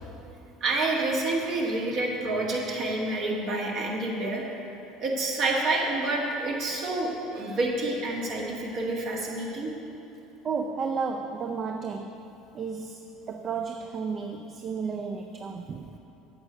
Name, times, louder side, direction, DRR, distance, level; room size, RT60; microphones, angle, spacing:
voice 1, 0.6-4.4 5.0-9.7, right 2 dB, 55° right, -2 dB, 1.7 m, -28 dB
voice 2, 10.4-12.3 12.5-16.0, right 5 dB, 40° right, 5 dB, 0.5 m, -33 dB
8.7 x 7.2 x 5.2 m, 2.9 s
hypercardioid pair, 75°, 0 cm